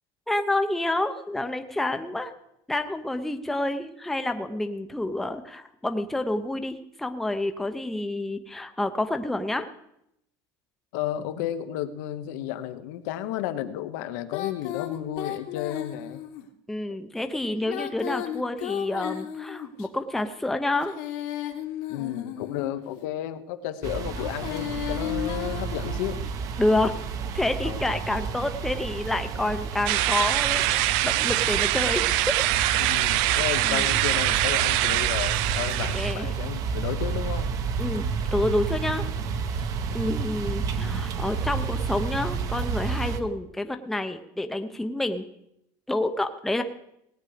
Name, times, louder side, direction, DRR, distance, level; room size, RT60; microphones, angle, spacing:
voice 1, 0.3-2.3 2.7-9.7 16.7-21.0 26.6-26.9 27.3-32.5 33.6-33.9 35.9-36.3 37.8-39.1 39.9-45.2 45.9-46.6, left 2 dB, 5° left, 7 dB, 0.6 m, -28 dB
voice 2, 10.9-16.2 21.9-26.2 27.6-27.8 32.7-37.5 39.9-40.1, left 12 dB, 80° left, 10 dB, 1.0 m, -33 dB
Female singing, 14.3-16.4 17.6-19.9 20.7-22.8 24.1-26.3, left 12 dB, 60° left, 1.4 m, -34 dB
sound 1, 23.8-43.2, right 5 dB, 35° right, 0.8 m, -31 dB
sound 2, 29.9-36.1, right 15 dB, 65° right, 0.5 m, -24 dB
18.0 x 8.8 x 5.0 m, 0.78 s
cardioid pair, 170°, 9 cm